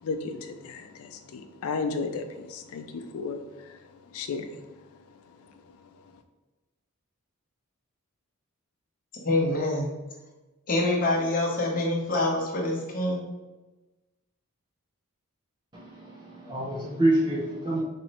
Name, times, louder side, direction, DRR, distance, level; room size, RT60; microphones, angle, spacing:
voice 1, 0.0-3.8 4.1-4.6, left 4 dB, 70° left, 7 dB, 0.4 m, -34 dB
voice 2, 9.2-9.9 10.7-13.2, left 2 dB, 40° left, -2 dB, 0.8 m, -25 dB
voice 3, 15.7-17.8, right 1 dB, 20° right, -6 dB, 0.5 m, -27 dB
4.2 x 3.1 x 2.9 m, 1.1 s
head